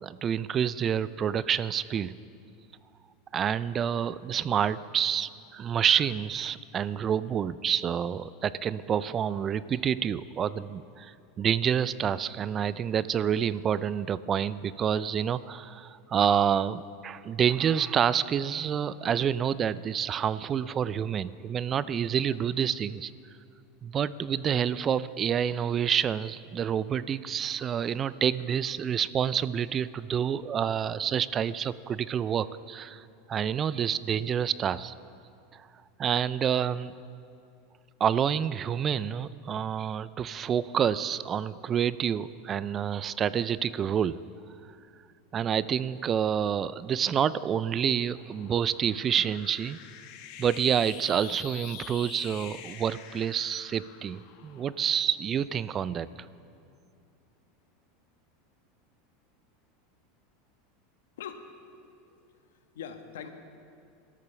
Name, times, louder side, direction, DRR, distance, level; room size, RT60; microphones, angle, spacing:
voice 1, 0.0-2.2 3.3-23.1 23.8-34.9 36.0-36.9 38.0-44.2 45.3-49.8 50.4-56.1, right 8 dB, 35° right, 17 dB, 0.4 m, -28 dB
sound 1, 47.4-55.9, left 9 dB, 60° left, 1.2 m, -47 dB
voice 2, 61.2-61.5 61.8-63.3, left 7 dB, 75° left, 7 dB, 1.3 m, -43 dB
21.0 x 13.5 x 3.4 m, 2.6 s
hypercardioid pair, 90°, 0 cm